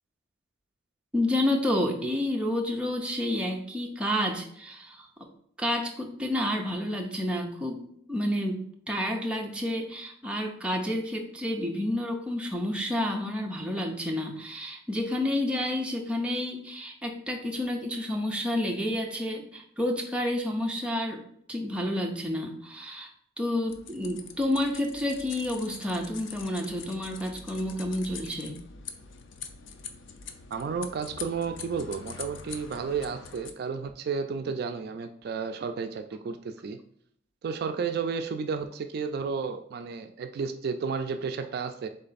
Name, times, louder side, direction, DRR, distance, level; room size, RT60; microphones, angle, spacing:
voice 1, 1.1-5.1 5.6-7.8 8.1-21.2 21.5-23.1 23.4-28.6, left 1 dB, 5° right, 0 dB, 0.6 m, -30 dB
sound 1, 23.7-33.5, left 6 dB, 75° left, 0.4 m, -44 dB
voice 2, 30.5-36.8 37.4-41.9, right 5 dB, 55° right, 7 dB, 0.3 m, -32 dB
3.8 x 3.3 x 4.0 m, 0.67 s
head